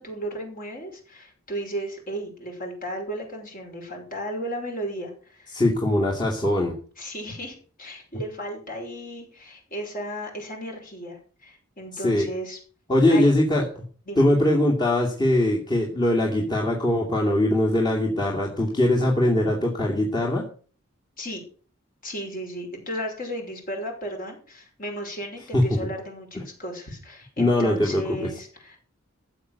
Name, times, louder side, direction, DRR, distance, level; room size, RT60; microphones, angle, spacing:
voice 1, 0.0-5.6 7.0-12.6 13.1-13.4 14.1-14.3 21.2-21.4 22.0-28.8, right 1 dB, 45° left, 2 dB, 5.6 m, -35 dB
voice 2, 5.5-6.8 11.9-12.3 12.9-13.6 14.2-20.5 25.5-25.8 26.3-26.4 27.4-28.3, left 1 dB, 20° left, -2 dB, 2.6 m, -21 dB
14.5 x 8.2 x 6.7 m, 0.42 s
head